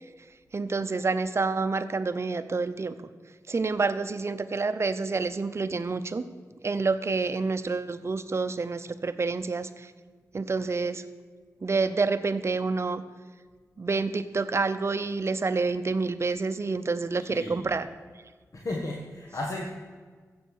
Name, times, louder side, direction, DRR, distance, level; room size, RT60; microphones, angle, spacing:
voice 1, 0.5-3.0 3.5-6.2 6.6-9.9 10.3-11.0 11.6-13.0 13.8-17.9, right 4 dB, 45° right, 11 dB, 0.7 m, -28 dB
voice 2, 17.3-17.7 18.5-19.7, left 2 dB, 60° left, -1 dB, 1.5 m, -34 dB
14.5 x 7.9 x 6.5 m, 1.5 s
wide cardioid pair, 115°, 6 cm